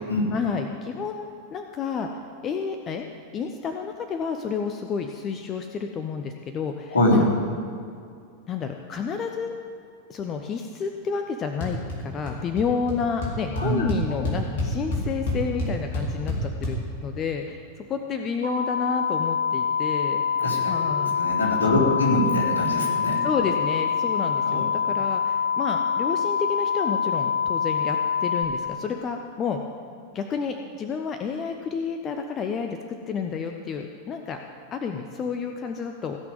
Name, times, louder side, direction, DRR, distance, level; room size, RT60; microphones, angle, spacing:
voice 1, 0.3-2.1 2.4-3.1 3.3-7.2 8.5-9.5 10.1-20.2 20.6-21.2 21.7-22.0 23.2-29.6 30.1-34.4 34.7-36.2, left 6 dB, 30° left, 5 dB, 0.9 m, -30 dB
sound 1, 11.6-12.0 12.2-12.6 12.9-13.0 13.2-16.7, left 2 dB, 55° left, 3.9 m, -28 dB
voice 2, 13.5-13.9 20.4-20.7 21.1-23.2 24.4-24.6, left 1 dB, 70° left, -4 dB, 3.7 m, -23 dB
sound 2, 18.4-28.4, left 6 dB, 80° right, 2.7 m, -25 dB
17.0 x 6.1 x 9.4 m, 2.3 s
figure-of-eight pair, 90°, 0 cm